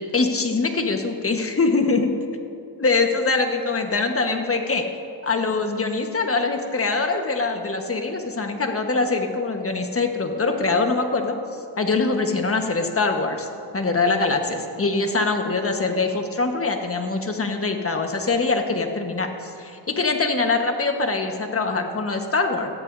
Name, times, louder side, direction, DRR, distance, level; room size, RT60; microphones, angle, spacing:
voice 1, 0.0-2.1 2.8-4.8 5.2-11.4 11.8-13.5 13.7-22.7, left 3 dB, 25° left, 4 dB, 1.4 m, -23 dB
17.5 x 13.5 x 2.7 m, 2.5 s
cardioid pair, 90°, 49 cm